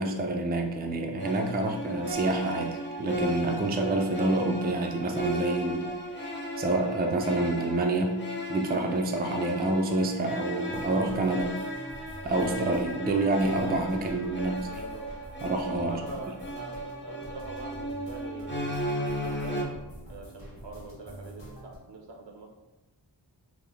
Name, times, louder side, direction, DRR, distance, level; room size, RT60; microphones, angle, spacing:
voice 1, 0.0-5.9 6.6-8.2 8.5-11.6 12.2-14.6 15.4-16.0, right 2 dB, 25° right, 3 dB, 0.3 m, -27 dB
sound 1, 1.2-19.6, equal, 25° left, 0.5 m, -36 dB
sound 2, 10.6-21.8, right 1 dB, 50° left, 1.4 m, -46 dB
voice 2, 14.3-15.2 15.8-18.7 19.2-19.7 20.1-22.5, right 2 dB, 75° right, 1 dB, 0.7 m, -43 dB
3.4 x 2.1 x 3.3 m, 1.1 s
wide cardioid pair, 50°, 44 cm